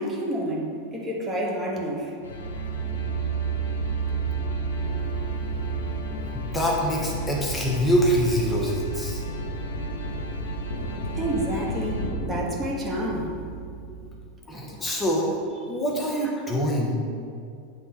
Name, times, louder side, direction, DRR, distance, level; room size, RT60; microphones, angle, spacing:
voice 1, 0.0-2.1 11.1-13.3, right 1 dB, 20° right, -2 dB, 1.1 m, -29 dB
sound 1, 2.2-14.2, right 3 dB, 80° left, 0.7 m, -31 dB
voice 2, 6.3-9.2 14.5-15.4 15.7-17.0, equal, 15° left, -2 dB, 1.1 m, -25 dB
8.4 x 3.6 x 4.2 m, 2.4 s
hypercardioid pair, 95°, 0 cm